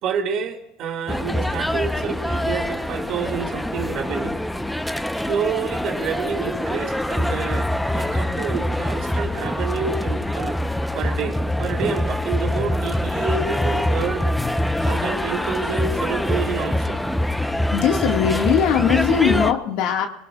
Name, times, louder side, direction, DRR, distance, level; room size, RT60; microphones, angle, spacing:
voice 1, 0.0-4.4 5.3-10.6 10.9-14.3 14.8-17.0, right 6 dB, 55° right, 5 dB, 2.3 m, -29 dB
sound 1, 1.1-19.5, left 1 dB, 5° left, 0.8 m, -24 dB
voice 2, 17.4-20.1, left 8 dB, 65° left, 3 dB, 1.8 m, -20 dB
23.5 x 18.0 x 2.4 m, 0.85 s
supercardioid pair, 105°, 0 cm